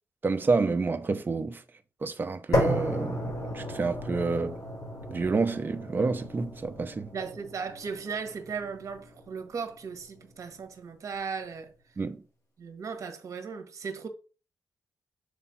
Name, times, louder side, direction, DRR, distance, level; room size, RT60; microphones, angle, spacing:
voice 1, 0.2-1.6 2.0-4.6 5.1-7.1 12.0-12.2, right 4 dB, 30° right, 0.8 m, -29 dB
sound 1, 2.5-10.6, equal, 55° left, 4.2 m, -34 dB
voice 2, 7.1-11.7 12.6-14.1, right 5 dB, 50° right, 1.4 m, -37 dB
6.9 x 3.4 x 5.8 m
cardioid pair, 120°, 7 cm